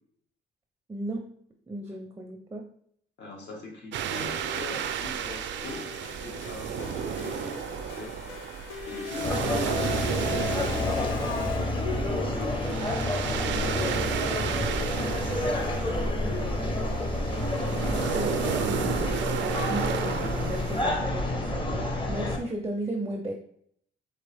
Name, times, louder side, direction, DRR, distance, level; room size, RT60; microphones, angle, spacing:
voice 1, 0.9-1.3 1.7-2.6 17.7-23.3, right 1 dB, 15° right, 4 dB, 0.5 m, -35 dB
voice 2, 3.2-5.9 6.2-8.2 8.9-13.9, left 2 dB, 60° left, -1 dB, 1.6 m, -42 dB
sound 1, 3.9-20.8, right 9 dB, 65° right, 0.4 m, -33 dB
sound 2, 4.1-12.2, left 7 dB, 85° left, 0.5 m, -39 dB
sound 3, 9.2-22.4, left 1 dB, 25° left, 1.0 m, -29 dB
4.3 x 3.3 x 3.4 m, 0.66 s
cardioid pair, 90°, 20 cm